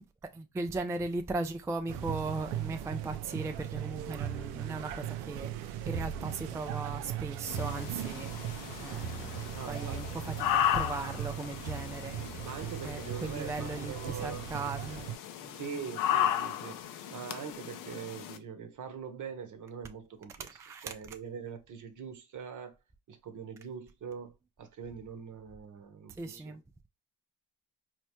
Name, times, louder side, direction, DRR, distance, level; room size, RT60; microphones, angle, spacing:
voice 1, 0.3-12.3 12.8-15.1 15.4-15.6 20.5-20.9 26.2-26.6, right 3 dB, 10° right, 0.3 m, -38 dB
sound 1, 1.9-15.2, right 10 dB, 75° right, 0.5 m, -38 dB
sound 2, 7.5-18.4, left 10 dB, 60° left, 0.6 m, -35 dB
voice 2, 9.5-10.0 12.4-14.5 15.6-22.7 23.1-26.6, right 6 dB, 50° right, 0.9 m, -43 dB
4.4 x 2.1 x 2.9 m
hypercardioid pair, 55°, 38 cm